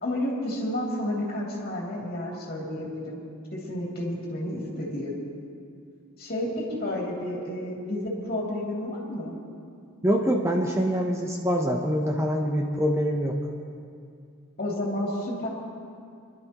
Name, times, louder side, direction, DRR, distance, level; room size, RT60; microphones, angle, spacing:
voice 1, 0.0-3.2 3.5-5.1 6.2-9.3 14.6-15.5, left 1 dB, 45° left, -4 dB, 2.7 m, -31 dB
voice 2, 10.0-13.3, equal, 15° right, 1 dB, 0.8 m, -25 dB
26.5 x 11.5 x 3.0 m, 2.4 s
head